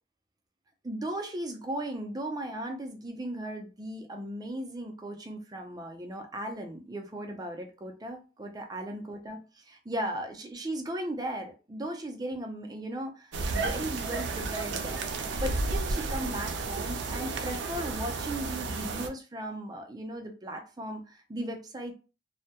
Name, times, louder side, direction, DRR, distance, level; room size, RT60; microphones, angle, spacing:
voice 1, 0.8-21.9, right 1 dB, 20° right, 4 dB, 0.4 m, -37 dB
sound 1, 13.3-19.1, right 3 dB, 80° right, 0.4 m, -32 dB
2.2 x 2.1 x 2.7 m, 0.34 s
head